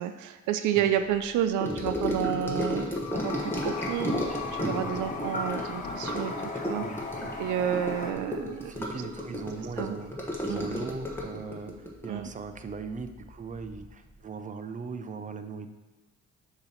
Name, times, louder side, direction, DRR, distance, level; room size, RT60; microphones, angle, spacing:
voice 1, 0.0-6.8 7.4-8.7 9.8-9.9 10.5-10.7 12.1-12.3, right 10 dB, 85° right, 9 dB, 0.5 m, -30 dB
Gurgling / Sink (filling or washing) / Trickle dribble, 1.6-13.3 13.5-13.9 14.1-14.2, equal, 5° left, 1.2 m, -33 dB
sound 1, 2.9-9.3, left 9 dB, 50° left, 0.5 m, -44 dB
Toilet flush, 3.1-8.1, left 2 dB, 25° left, 0.8 m, -37 dB
voice 2, 6.8-7.3 8.7-10.1 10.4-15.7, right 5 dB, 25° right, 8 dB, 0.5 m, -39 dB
6.5 x 3.0 x 5.6 m, 1.2 s
cardioid pair, 90°, 30 cm